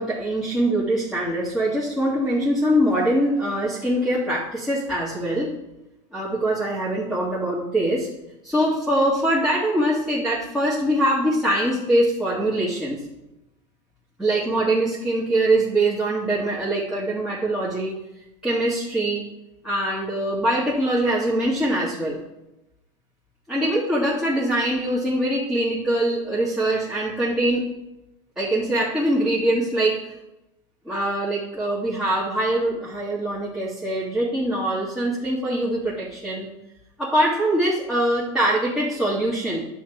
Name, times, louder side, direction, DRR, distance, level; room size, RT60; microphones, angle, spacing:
voice 1, 0.0-5.5 6.1-8.1 8.4-13.1 14.2-18.0 18.4-19.2 19.6-22.2 23.5-27.6 28.4-30.1 30.9-36.5 37.0-39.6, right 1 dB, 5° right, -9 dB, 2.2 m, -23 dB
9.9 x 4.4 x 7.2 m, 0.93 s
supercardioid pair, 130°, 17 cm